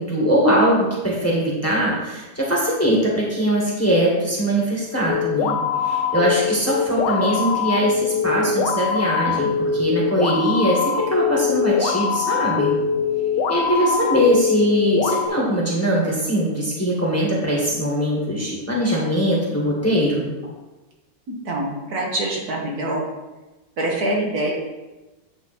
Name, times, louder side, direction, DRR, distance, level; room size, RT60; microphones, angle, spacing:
voice 1, 0.0-5.6 5.8-12.7 13.5-20.2, equal, 10° left, -4 dB, 1.6 m, -21 dB
sound 1, 5.1-15.3, left 6 dB, 90° left, 1.3 m, -23 dB
voice 2, 21.5-23.0 23.8-24.5, right 1 dB, 65° right, -2 dB, 1.7 m, -24 dB
9.6 x 3.9 x 4.3 m, 1.1 s
omnidirectional pair, 1.8 m